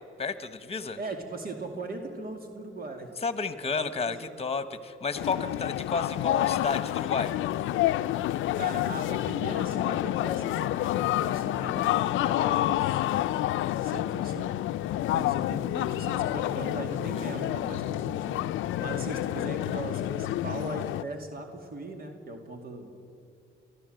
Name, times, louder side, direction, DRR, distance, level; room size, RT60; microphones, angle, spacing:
voice 1, 0.2-1.0 3.2-7.3 17.1-17.3, left 5 dB, 30° left, 12 dB, 1.3 m, -31 dB
voice 2, 1.0-3.1 3.6-4.3 8.5-13.0 13.8-14.5 15.1-18.5 18.8-23.0, right 2 dB, 50° right, 4 dB, 2.5 m, -39 dB
sound 1, 5.2-21.0, left 14 dB, 85° left, 0.5 m, -28 dB
24.0 x 14.0 x 7.9 m, 2.4 s
cardioid pair, 90°, 20 cm